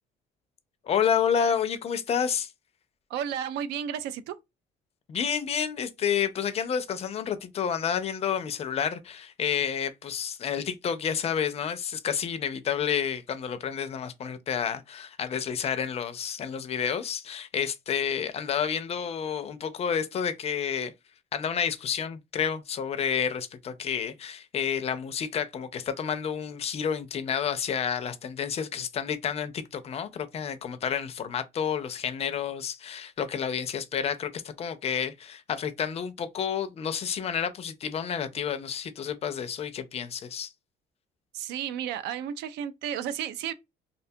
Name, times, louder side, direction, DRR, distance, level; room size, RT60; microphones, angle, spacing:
voice 1, 0.8-2.5 5.1-20.9 21.3-40.5, left 7 dB, 40° left, 0.4 m, -30 dB
voice 2, 3.1-4.4 41.3-43.5, right 9 dB, 80° right, 0.4 m, -32 dB
2.5 x 2.2 x 2.6 m
cardioid pair, 110°, 17 cm